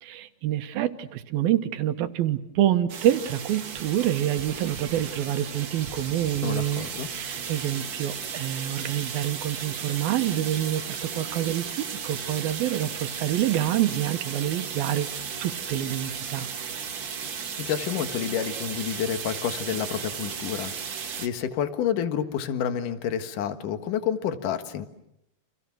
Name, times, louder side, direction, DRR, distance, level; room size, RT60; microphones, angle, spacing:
voice 1, 0.0-16.5, right 12 dB, 75° right, 9 dB, 3.0 m, -27 dB
sound 1, 2.9-21.3, right 6 dB, 50° right, 1.4 m, -35 dB
voice 2, 6.4-7.1 17.6-24.9, left 8 dB, 65° left, 8 dB, 3.0 m, -29 dB
30.0 x 28.5 x 6.3 m, 0.81 s
omnidirectional pair, 4.4 m